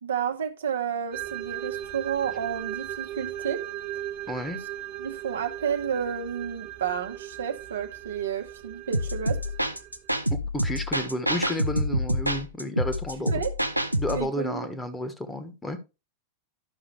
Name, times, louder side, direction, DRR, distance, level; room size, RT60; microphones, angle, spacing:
voice 1, 0.0-3.6 5.0-9.4 13.2-13.5 14.1-14.7, right 8 dB, 65° right, 1.0 m, -31 dB
sound 1, 1.1-10.2, right 13 dB, 40° right, 1.5 m, -38 dB
voice 2, 4.3-4.6 10.3-13.3 13.9-15.8, left 1 dB, 10° left, 1.3 m, -32 dB
sound 2, 8.9-14.3, equal, 85° right, 0.6 m, -27 dB
11.5 x 5.8 x 3.2 m
figure-of-eight pair, 90°, 0 cm